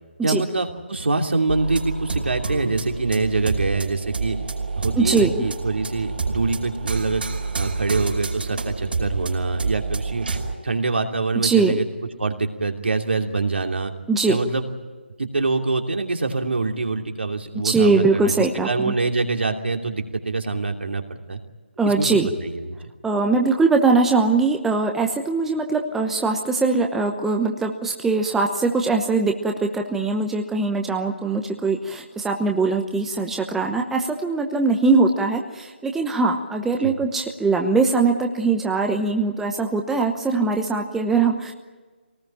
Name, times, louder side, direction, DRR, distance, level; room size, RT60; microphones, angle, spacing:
voice 1, 0.2-4.4 4.8-7.2 7.5-10.3 10.6-11.9 12.2-13.9 14.3-14.7 15.2-21.4 21.8-22.8 36.8-36.9, right 3 dB, 70° right, 4 dB, 2.8 m, -25 dB
sound 1, 1.5-10.5, right 4 dB, 55° right, 4.9 m, -28 dB
voice 2, 5.0-5.3 11.4-11.7 14.1-14.4 17.6-18.9 21.8-22.3 23.0-41.5, right 3 dB, 5° right, 3 dB, 1.0 m, -21 dB
23.0 x 19.0 x 8.9 m, 1.4 s
figure-of-eight pair, 155°, 6 cm